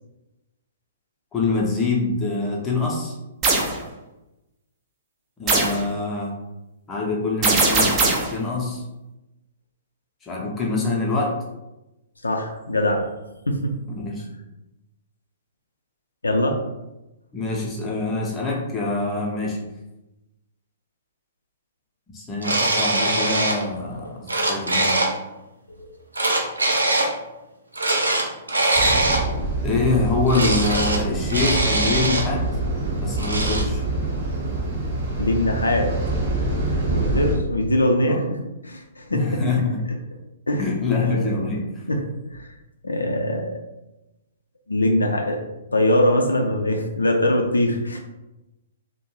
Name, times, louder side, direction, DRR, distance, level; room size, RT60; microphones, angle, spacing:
voice 1, 1.3-3.2 5.4-6.4 6.9-8.8 10.2-11.4 13.9-14.2 17.3-19.6 22.1-25.0 29.6-32.5 33.0-33.8 38.1-38.2 39.1-39.8 40.6-41.8, left 3 dB, 15° left, -3 dB, 0.6 m, -25 dB
sound 1, 3.4-3.7 5.5-5.8 7.4-8.4, right 3 dB, 25° right, 0.5 m, -19 dB
voice 2, 12.2-13.0 13.5-13.7 16.2-16.6 25.8-25.9 35.2-35.9 36.9-38.4 38.6-39.3 40.5-41.4 41.9-42.0 42.3-42.5 42.8-43.5 44.7-45.4 45.7-48.0, left 1 dB, 75° left, 1 dB, 0.4 m, -22 dB
sound 2, 22.4-23.6 24.0-25.1 26.1-27.1 27.7-29.3 30.3-31.0 31.3-32.2 33.2-33.6, right 2 dB, 75° right, 0.4 m, -22 dB
sound 3, 28.7-37.3, right 2 dB, 40° right, 0.9 m, -25 dB
2.5 x 2.1 x 3.0 m, 0.97 s
figure-of-eight pair, 115°, 0 cm